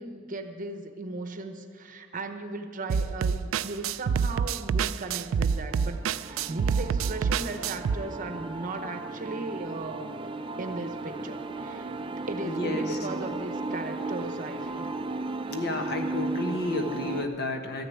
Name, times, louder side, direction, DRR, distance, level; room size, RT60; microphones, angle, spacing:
voice 1, 0.0-10.1 10.6-11.9 12.3-15.0, right 2 dB, 45° right, 7 dB, 0.9 m, -37 dB
sound 1, 2.9-8.0, right 6 dB, 85° right, 0.3 m, -27 dB
sound 2, 5.4-17.3, right 2 dB, 25° right, 0.5 m, -35 dB
voice 2, 12.4-13.0 15.5-17.8, left 2 dB, 55° left, 4 dB, 1.3 m, -31 dB
13.0 x 6.8 x 9.2 m, 2.2 s
head